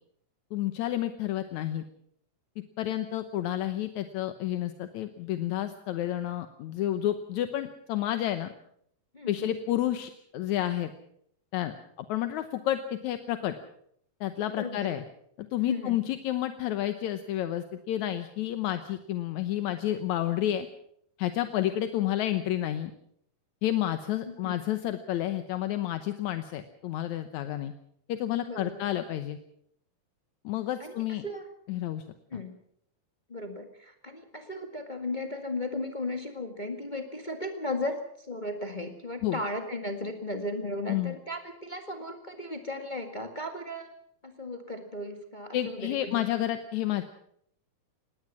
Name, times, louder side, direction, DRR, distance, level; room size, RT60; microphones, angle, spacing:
voice 1, 0.5-1.8 2.8-8.5 9.3-10.9 11.5-11.7 12.1-13.5 14.2-15.0 15.4-20.7 21.2-22.9 23.6-27.7 28.1-29.4 30.4-31.2 31.7-32.0 39.2-39.4 40.9-41.2 45.5-47.0, left 12 dB, 70° left, 10 dB, 1.9 m, -30 dB
voice 2, 9.1-9.5 14.5-14.9 15.5-16.0 24.2-24.6 28.4-28.9 30.8-30.9 31.2-31.5 32.3-32.5 33.3-43.9 44.2-46.2, left 1 dB, 25° left, 5 dB, 1.0 m, -36 dB
20.0 x 17.5 x 7.4 m, 0.69 s
omnidirectional pair, 4.2 m